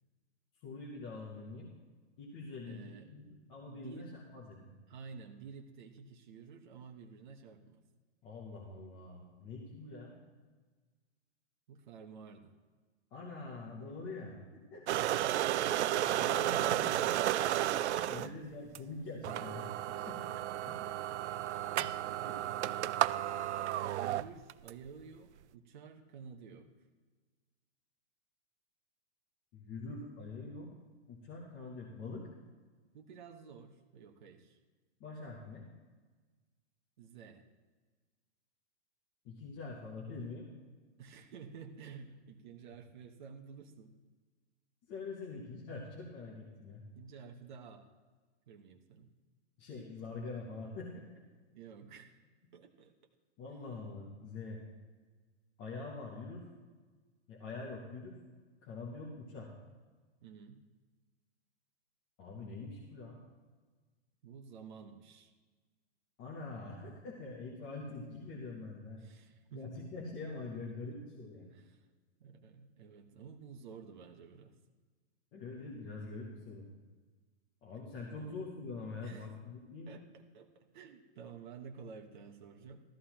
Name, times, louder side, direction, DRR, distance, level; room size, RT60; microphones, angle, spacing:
voice 1, 0.6-1.7 2.2-4.7 8.2-10.2 13.1-15.0 15.7-17.2 18.1-19.7 20.0-20.2 20.7-20.8 21.8-21.9 22.3-22.4 29.5-30.7 31.1-32.3 35.0-35.7 39.2-40.5 44.9-46.8 49.6-51.0 53.4-54.6 55.6-56.4 57.3-58.1 58.6-59.5 62.2-63.2 66.2-69.0 69.5-71.5 75.3-76.7 77.6-80.0, left 3 dB, 10° left, -4 dB, 0.5 m, -45 dB
voice 2, 2.7-3.1 3.7-4.1 4.9-7.8 11.7-12.5 15.9-17.5 18.0-18.4 22.0-22.4 22.6-23.2 23.8-26.7 32.9-34.6 37.0-37.4 41.0-44.0 46.9-47.8 48.5-49.1 51.5-52.1 52.5-52.9 60.2-60.6 64.2-65.3 69.0-69.8 71.5-71.8 72.2-74.5 78.2-78.4 79.0-79.3 79.9-82.8, right 6 dB, 45° right, 4 dB, 1.0 m, -51 dB
sound 1, 14.9-18.3 18.7-18.8 19.2-24.7, right 13 dB, 75° right, 0.5 m, -33 dB
16.0 x 13.0 x 2.9 m, 1.4 s
hypercardioid pair, 175°, 34 cm